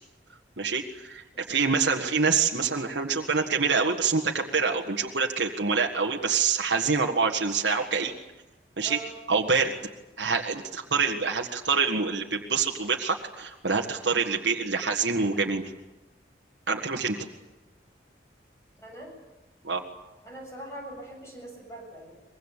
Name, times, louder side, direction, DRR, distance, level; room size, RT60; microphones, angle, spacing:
voice 1, 0.6-8.1 8.8-9.0 9.3-9.7 10.2-15.6 16.7-17.2 19.6-19.8, right 5 dB, 80° right, 2 dB, 1.8 m, -26 dB
voice 2, 1.3-1.9 8.8-9.1 14.5-14.7 18.8-19.1 20.2-22.2, right 1 dB, 15° left, -1 dB, 7.7 m, -43 dB
24.0 x 22.0 x 8.4 m, 1.1 s
head